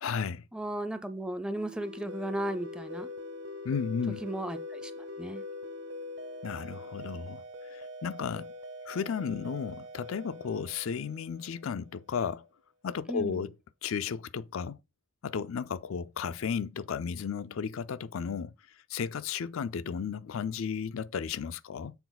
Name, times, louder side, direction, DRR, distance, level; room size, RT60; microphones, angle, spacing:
voice 1, 0.0-0.4 3.6-4.2 6.4-7.4 7.7-8.5 8.9-12.5 12.8-13.5 13.8-14.8 15.2-18.5 18.9-21.9, left 6 dB, 80° left, 0.4 m, -34 dB
voice 2, 0.5-3.1 4.2-5.4 13.1-13.4, right 1 dB, 5° right, 0.4 m, -35 dB
sound 1, 1.5-11.9, left 2 dB, 60° right, 0.8 m, -43 dB
7.1 x 4.2 x 4.0 m
head